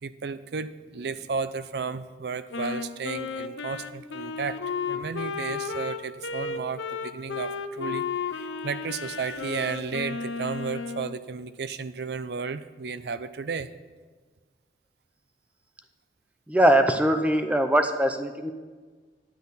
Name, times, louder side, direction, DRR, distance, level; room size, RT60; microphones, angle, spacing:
voice 1, 0.0-4.6 4.9-13.7, right 5 dB, 60° right, 14 dB, 0.4 m, -33 dB
Wind instrument woodwind instrument, 2.5-11.2, left 5 dB, 85° left, 0.6 m, -33 dB
voice 2, 16.5-18.5, right 1 dB, 5° right, 7 dB, 0.5 m, -21 dB
10.5 x 9.8 x 4.1 m, 1.4 s
head